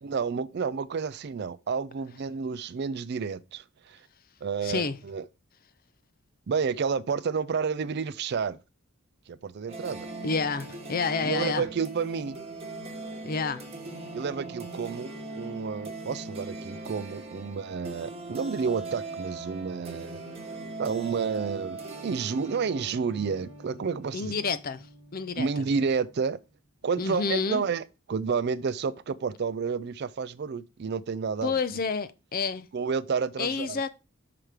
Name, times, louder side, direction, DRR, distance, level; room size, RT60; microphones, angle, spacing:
voice 1, 0.0-4.0 4.4-5.2 6.5-8.6 9.3-10.1 11.2-12.4 14.1-20.2 20.8-24.3 25.4-26.4 26.8-31.5 32.7-33.8, right 5 dB, 50° right, 0.4 m, -30 dB
voice 2, 4.6-5.0 10.2-11.6 13.2-13.7 24.1-25.7 27.0-27.6 31.4-32.7 33.4-33.9, left 5 dB, 45° left, 0.6 m, -29 dB
sound 1, 9.7-26.3, right 2 dB, 30° right, 1.2 m, -40 dB
5.9 x 4.8 x 5.0 m
head